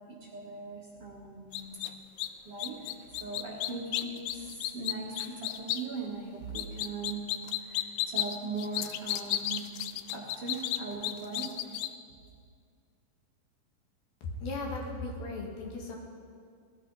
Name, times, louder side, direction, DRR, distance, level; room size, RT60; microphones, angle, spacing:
voice 1, 0.0-1.8 2.5-2.9 3.2-7.2 7.6-9.7 10.1-11.5, right 3 dB, 50° right, -4 dB, 2.1 m, -39 dB
sound 1, 1.5-1.9 2.2-2.3 2.6-5.8 6.5-11.9, left 13 dB, 90° left, 2.5 m, -32 dB
voice 2, 14.2-16.0, left 2 dB, 75° left, 0 dB, 3.5 m, -37 dB
19.0 x 13.5 x 4.1 m, 2.2 s
omnidirectional pair, 4.3 m